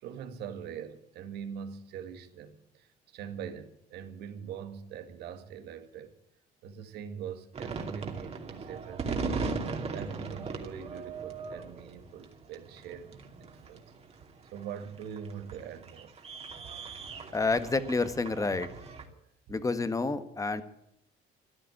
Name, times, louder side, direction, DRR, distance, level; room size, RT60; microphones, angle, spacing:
voice 1, 0.0-6.1 6.6-9.5 9.9-13.9 14.5-16.2 19.1-19.2, right 7 dB, 80° right, 1.9 m, -43 dB
sound 1, 7.5-19.0, right 4 dB, 35° right, 2.5 m, -38 dB
voice 2, 17.3-18.7 19.5-20.6, left 3 dB, 20° left, 1.4 m, -29 dB
14.5 x 11.5 x 8.8 m
cardioid pair, 110°, 17 cm